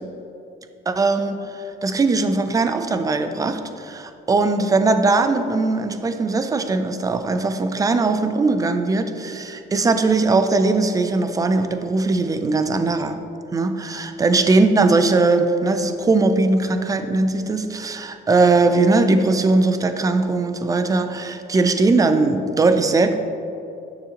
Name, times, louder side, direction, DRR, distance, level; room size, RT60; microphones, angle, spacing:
voice 1, 0.9-13.2 13.5-23.2, right 3 dB, 20° right, 9 dB, 0.5 m, -20 dB
9.5 x 6.7 x 3.0 m, 2.8 s
cardioid pair, 110°, 17 cm